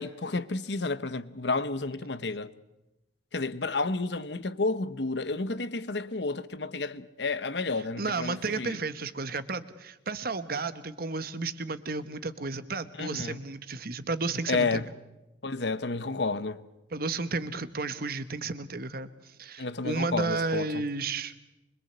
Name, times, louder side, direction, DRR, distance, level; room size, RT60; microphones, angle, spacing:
voice 1, 0.0-2.5 3.3-8.8 13.0-13.4 14.5-14.9 15.4-16.6 19.6-20.8, left 3 dB, 65° left, 1.0 m, -31 dB
voice 2, 7.8-14.8 16.9-21.3, right 3 dB, 55° right, 1.3 m, -32 dB
25.0 x 22.5 x 8.1 m
head